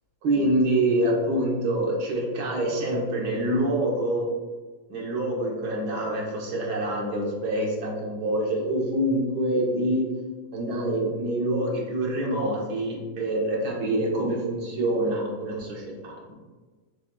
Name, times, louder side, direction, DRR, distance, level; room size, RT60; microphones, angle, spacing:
voice 1, 0.2-4.2 4.9-10.1 10.5-16.3, right 1 dB, 80° right, -2 dB, 1.5 m, -26 dB
5.7 x 3.8 x 2.2 m, 1.3 s
omnidirectional pair, 1.7 m